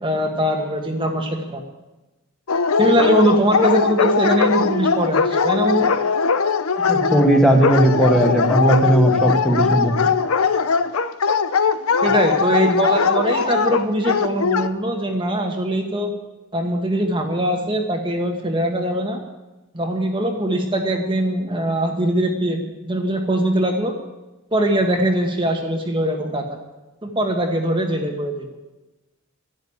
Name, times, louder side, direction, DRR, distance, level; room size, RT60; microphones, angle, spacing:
voice 1, 0.0-1.6 2.8-6.0 12.0-16.1 16.5-19.2 19.7-23.9 24.5-26.6 27.0-28.6, right 1 dB, 25° right, 2 dB, 1.4 m, -21 dB
Dog, 2.5-14.7, left 5 dB, 85° left, 0.7 m, -20 dB
voice 2, 6.9-10.1, right 1 dB, 5° left, 1 dB, 1.6 m, -17 dB
12.0 x 11.5 x 8.7 m, 1.1 s
head